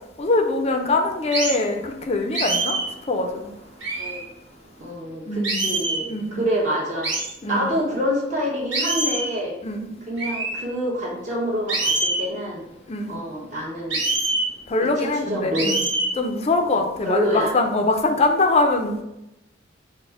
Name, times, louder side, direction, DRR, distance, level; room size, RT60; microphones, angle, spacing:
voice 1, 0.2-2.8 3.1-3.5 5.3-5.7 6.1-6.4 7.4-7.7 9.6-9.9 12.9-13.2 14.7-15.8 16.1-19.0, left 2 dB, 35° left, 4 dB, 0.4 m, -23 dB
sound 1, 1.3-1.6 2.3-2.9 3.8-4.2 5.4-6.0 7.0-7.3 8.7-9.3 10.2-10.5 11.7-12.2 13.9-14.5 15.5-16.1, right 2 dB, 85° right, 1.1 m, -24 dB
voice 2, 4.8-7.1 7.5-9.5 10.1-12.6 13.1-14.0 14.8-15.8 16.7-17.5, equal, 40° right, -4 dB, 1.1 m, -27 dB
4.1 x 2.1 x 4.5 m, 0.89 s
head